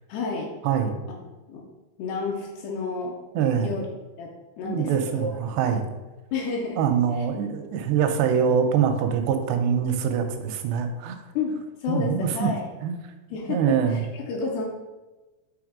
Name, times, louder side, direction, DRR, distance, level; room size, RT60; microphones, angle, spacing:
voice 1, 0.1-0.5 1.5-1.6 2.0-3.2 3.6-3.9 4.2-5.4 6.3-6.8 7.2-7.3 11.4-12.6 13.3-14.7, left 4 dB, 75° left, 0 dB, 2.6 m, -30 dB
voice 2, 0.6-1.0 3.4-3.7 4.6-5.9 6.8-11.2 11.9-12.5 12.8-13.0 13.5-14.0, right 7 dB, 85° right, 6 dB, 2.6 m, -24 dB
7.9 x 3.2 x 5.0 m, 1.1 s
omnidirectional pair, 5.1 m